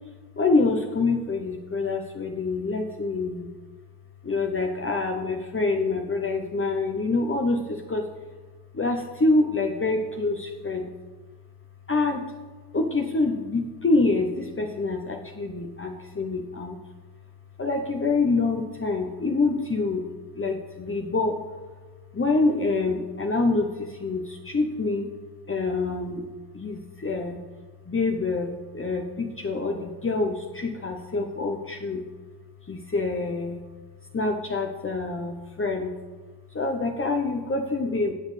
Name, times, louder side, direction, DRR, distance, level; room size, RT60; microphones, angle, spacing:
voice 1, 0.4-3.5 4.2-8.1 8.7-10.9 11.9-12.3 12.7-16.8 17.6-20.0 20.4-21.4 22.1-25.1 25.5-26.2 26.5-27.4 27.9-28.5 28.7-32.0 32.7-33.6 34.1-35.9 36.5-38.1, left 3 dB, 30° left, 2 dB, 0.8 m, -26 dB
18.5 x 6.3 x 3.3 m, 1.5 s
wide cardioid pair, 125°, 39 cm